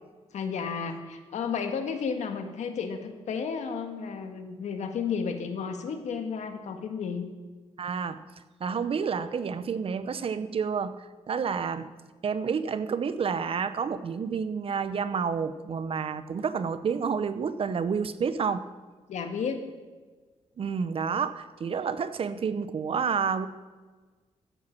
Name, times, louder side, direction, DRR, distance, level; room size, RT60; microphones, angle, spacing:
voice 1, 0.3-7.3 19.1-19.6, left 6 dB, 80° left, 6 dB, 1.6 m, -32 dB
voice 2, 7.8-8.2 8.6-11.9 12.2-18.6 20.6-23.5, right 6 dB, 50° right, 12 dB, 0.8 m, -29 dB
14.5 x 7.8 x 7.4 m, 1.4 s
cardioid pair, 100°, 12 cm